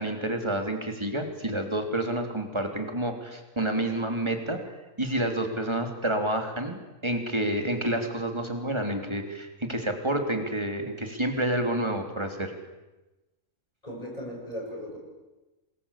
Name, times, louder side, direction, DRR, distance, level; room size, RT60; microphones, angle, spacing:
voice 1, 0.0-4.7 5.0-12.5, right 1 dB, 20° right, 4 dB, 3.4 m, -29 dB
voice 2, 13.8-15.0, equal, 25° left, -1 dB, 8.1 m, -37 dB
26.5 x 21.5 x 8.5 m, 1.1 s
omnidirectional pair, 1.4 m